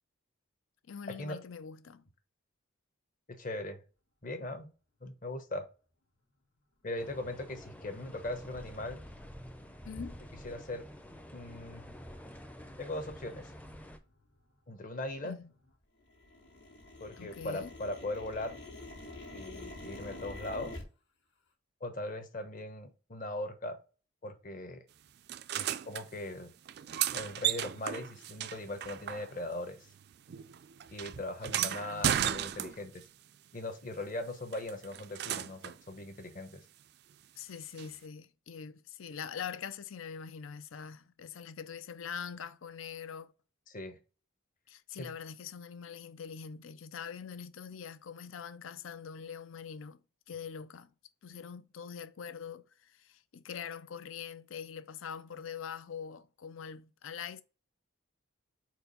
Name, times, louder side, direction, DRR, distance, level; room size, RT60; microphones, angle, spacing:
voice 1, 0.9-2.0 9.8-10.2 15.2-15.5 17.2-17.7 31.5-32.3 37.4-43.3 44.7-50.0 50.3-50.9 51.2-57.4, left 7 dB, 75° left, 0.5 m, -43 dB
voice 2, 3.4-3.8 4.2-4.7 5.0-5.6 6.8-9.0 10.4-10.8 11.3-11.9 12.8-13.5 14.7-15.3 17.0-18.5 19.3-20.8 21.8-23.8 24.2-24.8 25.5-26.5 27.1-29.8 30.9-33.0 33.5-36.6 43.7-43.9 45.0-45.1, left 1 dB, 40° left, 1.0 m, -39 dB
sound 1, 7.0-14.0, equal, 5° left, 0.5 m, -48 dB
sound 2, 10.8-10.9 11.4-11.7 12.2-12.3 12.5-13.1 13.4-15.7 16.0-20.8, left 2 dB, 55° left, 1.8 m, -47 dB
sound 3, 25.3-26.0 26.7-29.6 29.9-33.1 34.5-35.8 37.8-37.9, right 11 dB, 50° right, 0.3 m, -35 dB
4.6 x 4.5 x 5.3 m
head